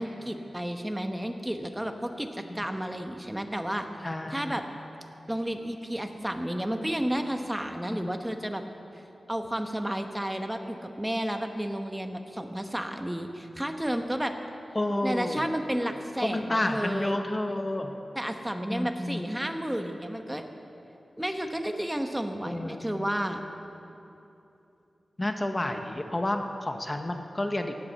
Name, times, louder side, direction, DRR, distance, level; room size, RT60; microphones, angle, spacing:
voice 1, 0.0-3.9 4.3-4.6 5.3-8.6 8.9-9.0 9.3-14.3 15.0-17.2 18.1-20.4 21.2-23.4, equal, 10° right, 5 dB, 1.0 m, -32 dB
voice 2, 4.0-4.6 7.9-8.1 14.7-15.5 16.2-17.9 18.7-19.2 22.4-23.1 25.2-27.8, left 1 dB, 25° left, 5 dB, 0.8 m, -30 dB
18.0 x 8.3 x 7.5 m, 2.9 s
wide cardioid pair, 95°, 0 cm